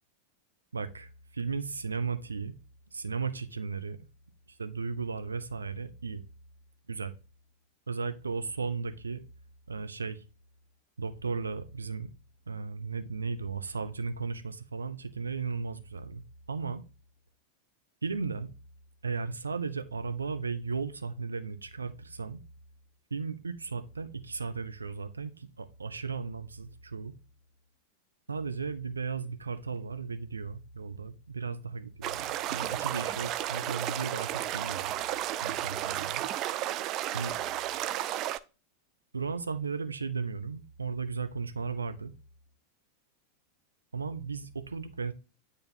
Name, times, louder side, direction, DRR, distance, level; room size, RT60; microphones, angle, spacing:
voice 1, 0.7-2.5 2.9-4.0 4.6-6.2 6.9-7.1 7.9-9.2 9.7-10.2 11.0-12.1 12.5-16.2 16.5-16.8 18.0-18.5 19.0-22.4 23.1-27.1 28.3-34.9 35.4-36.2 37.1-37.4 39.1-42.1 43.9-45.1, right 5 dB, 75° right, 0.6 m, -35 dB
sound 1, 32.0-38.4, right 13 dB, 35° right, 0.4 m, -33 dB
9.2 x 3.3 x 4.1 m
figure-of-eight pair, 90°, 0 cm